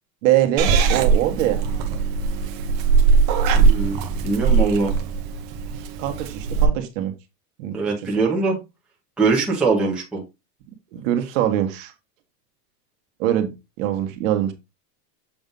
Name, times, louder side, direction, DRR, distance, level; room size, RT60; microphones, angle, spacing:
voice 1, 0.2-1.6 6.0-7.1 7.6-7.8 10.9-11.9 13.2-13.5 13.8-14.5, right 12 dB, 50° right, 1.3 m, -22 dB
Purr / Meow, 0.6-6.7, right 5 dB, 25° right, 0.5 m, -20 dB
voice 2, 3.6-4.0 4.2-4.9 7.7-8.6 9.2-10.2, right 4 dB, ahead, 0.8 m, -21 dB
7.2 x 2.6 x 5.2 m
supercardioid pair, 170°, 49 cm